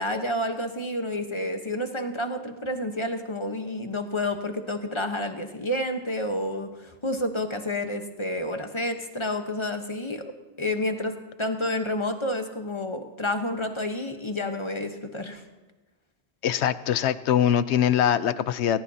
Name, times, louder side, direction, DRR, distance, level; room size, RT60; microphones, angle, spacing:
voice 1, 0.0-15.4, left 1 dB, 25° left, 5 dB, 1.1 m, -30 dB
voice 2, 16.4-18.8, left 9 dB, 85° left, 14 dB, 0.9 m, -23 dB
20.0 x 19.5 x 2.8 m, 1.1 s
omnidirectional pair, 1.1 m